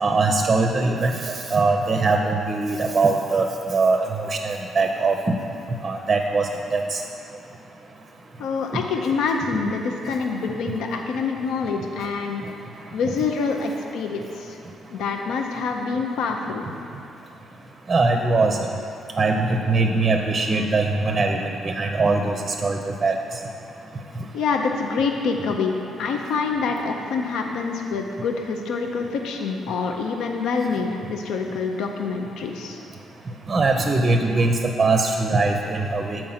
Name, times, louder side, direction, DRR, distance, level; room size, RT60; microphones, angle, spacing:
voice 1, 0.0-1.1 1.5-5.2 5.8-7.0 17.9-18.7 19.2-23.1 33.5-36.2, right 3 dB, 35° right, 3 dB, 0.5 m, -21 dB
voice 2, 8.4-12.4 12.9-14.6 14.9-16.7 24.3-32.8, left 4 dB, 80° left, 3 dB, 0.5 m, -26 dB
7.5 x 4.5 x 5.7 m, 2.7 s
cardioid pair, 90°, 0 cm